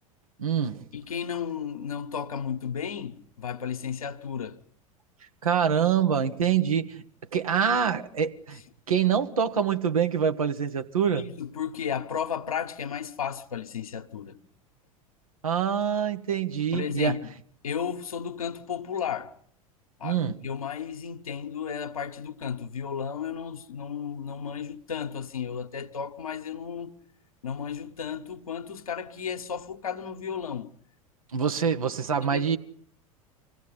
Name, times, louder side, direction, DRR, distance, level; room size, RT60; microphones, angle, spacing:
voice 1, 0.4-0.8 5.4-7.0 7.3-8.6 8.9-11.3 15.4-17.2 20.0-20.4 31.3-32.6, right 7 dB, 70° right, 1.4 m, -25 dB
voice 2, 0.9-4.6 11.1-14.4 16.7-17.3 17.6-19.3 20.0-26.9 27.4-30.7 32.1-32.4, left 7 dB, 75° left, 1.3 m, -34 dB
25.5 x 16.5 x 9.8 m
figure-of-eight pair, 80°, 18 cm